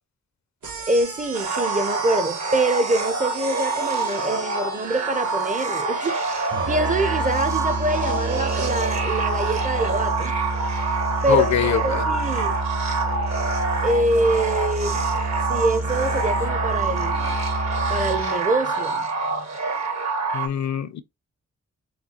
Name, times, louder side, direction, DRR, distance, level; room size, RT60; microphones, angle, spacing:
sound 1, 0.6-8.7, right 5 dB, 75° right, 1.1 m, -38 dB
voice 1, 0.9-10.4 11.2-12.5 13.8-15.0 15.5-17.4 17.9-19.1 19.3-19.5, right 1 dB, 25° right, 0.5 m, -25 dB
sound 2, 1.3-20.5, right 3 dB, 60° right, 1.4 m, -26 dB
Musical instrument, 6.5-18.4, right 2 dB, 45° right, 1.0 m, -29 dB
voice 2, 11.3-12.0 20.3-21.0, left 9 dB, 65° left, 0.5 m, -23 dB
6.6 x 2.3 x 2.8 m
cardioid pair, 85°, 31 cm